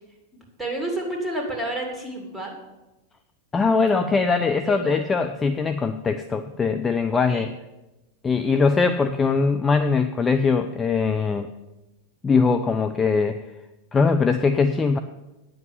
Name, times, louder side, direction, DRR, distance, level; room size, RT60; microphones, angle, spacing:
voice 1, 0.6-2.6 4.7-5.0 7.3-7.5, right 1 dB, 5° right, 1 dB, 2.9 m, -30 dB
voice 2, 3.5-7.5 8.2-11.5 12.2-13.4 13.9-15.0, left 4 dB, 15° left, 8 dB, 0.5 m, -21 dB
9.3 x 7.7 x 7.5 m, 1.0 s
figure-of-eight pair, 90°, 0 cm